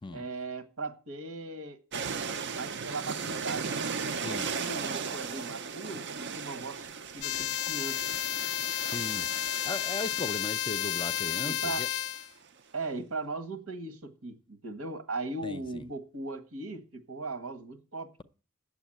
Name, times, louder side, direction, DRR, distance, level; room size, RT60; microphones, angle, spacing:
voice 1, 0.1-1.8 2.5-3.9 4.1-8.1 11.4-11.8 12.7-18.2, right 3 dB, 75° right, 1.5 m, -38 dB
sound 1, 1.9-12.2, right 5 dB, 50° right, 0.6 m, -37 dB
voice 2, 4.2-4.9 8.8-9.3 9.6-11.9 15.4-15.9, left 2 dB, 20° left, 0.5 m, -38 dB
sound 2, 7.2-12.3, left 13 dB, 75° left, 0.5 m, -32 dB
9.2 x 7.1 x 9.0 m
head